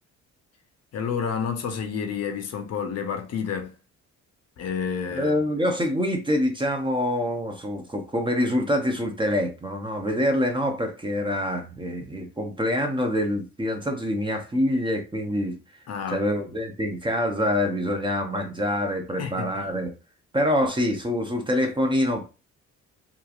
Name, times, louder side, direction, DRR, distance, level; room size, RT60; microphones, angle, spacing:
voice 1, 0.9-3.7 4.6-5.5 15.9-16.2 19.2-19.5, left 6 dB, 55° left, 0.7 m, -30 dB
voice 2, 5.1-15.5 16.1-19.9 20.3-22.2, left 1 dB, 15° right, 0.6 m, -25 dB
2.9 x 2.4 x 2.4 m
cardioid pair, 90°, 30 cm